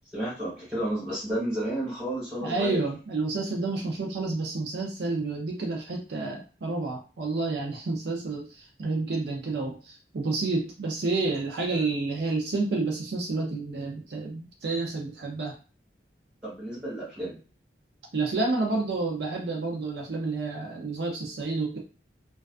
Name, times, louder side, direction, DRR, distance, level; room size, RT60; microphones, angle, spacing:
voice 1, 0.1-2.8 16.4-17.4, right 1 dB, 5° right, -7 dB, 1.3 m, -31 dB
voice 2, 2.4-15.5 18.1-21.8, right 3 dB, 65° right, 1 dB, 0.5 m, -29 dB
2.3 x 2.2 x 2.4 m, 0.35 s
head